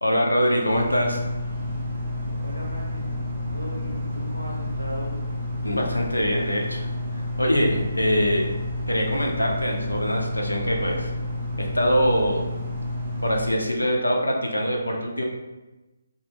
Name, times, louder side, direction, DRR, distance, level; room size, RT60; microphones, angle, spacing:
voice 1, 0.0-1.2 5.6-6.9 7.1-8.5 8.9-11.1 11.6-12.5 13.2-15.2, equal, 80° left, 0 dB, 0.5 m, -23 dB
sound 1, 0.7-13.5, left 1 dB, 25° right, 0.6 m, -30 dB
voice 2, 2.4-3.2 3.5-5.2, equal, 80° right, -2 dB, 0.8 m, -37 dB
2.1 x 2.1 x 3.1 m, 1.1 s
figure-of-eight pair, 140°, 0 cm